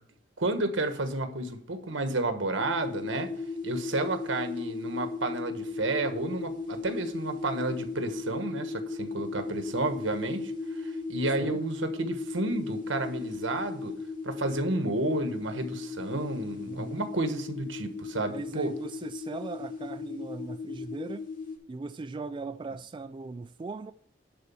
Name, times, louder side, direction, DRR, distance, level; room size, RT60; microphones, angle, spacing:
voice 1, 0.4-3.3 3.6-10.5 10.8-13.9 14.2-18.7, right 2 dB, 80° right, 1.3 m, -31 dB
sound 1, 2.6-21.6, left 4 dB, 45° left, 2.4 m, -37 dB
voice 2, 16.7-17.0 18.3-21.3 21.7-23.9, right 3 dB, 25° right, 0.3 m, -39 dB
11.0 x 4.0 x 7.0 m
head